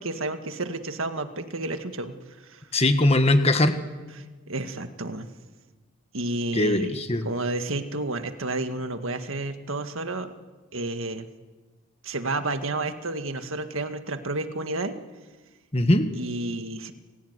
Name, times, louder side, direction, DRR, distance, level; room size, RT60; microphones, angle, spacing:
voice 1, 0.0-2.6 4.1-5.3 6.1-7.0 7.2-10.4 10.7-11.3 12.0-14.9 16.1-16.9, right 2 dB, 65° right, 8 dB, 1.8 m, -31 dB
voice 2, 2.7-3.7 6.5-7.2 15.7-16.1, left 1 dB, 30° left, 8 dB, 1.5 m, -20 dB
29.5 x 16.5 x 9.6 m, 1.3 s
head